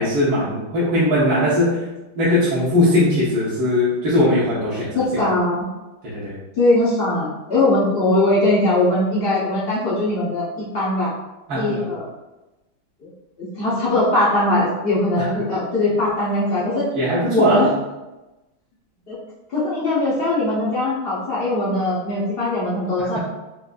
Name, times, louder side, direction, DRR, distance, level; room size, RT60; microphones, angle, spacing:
voice 1, 0.0-1.8 2.2-4.9 6.0-6.4 11.5-11.9 15.2-15.3 17.0-17.7 23.1-23.2, left 1 dB, 80° right, -10 dB, 1.8 m, -19 dB
voice 2, 4.9-5.7 6.6-11.1 11.5-12.1 13.4-16.8 17.3-17.7 19.1-19.2 19.5-23.2, left 2 dB, 80° left, -7 dB, 0.5 m, -20 dB
4.9 x 2.2 x 2.5 m, 1.0 s
omnidirectional pair, 2.2 m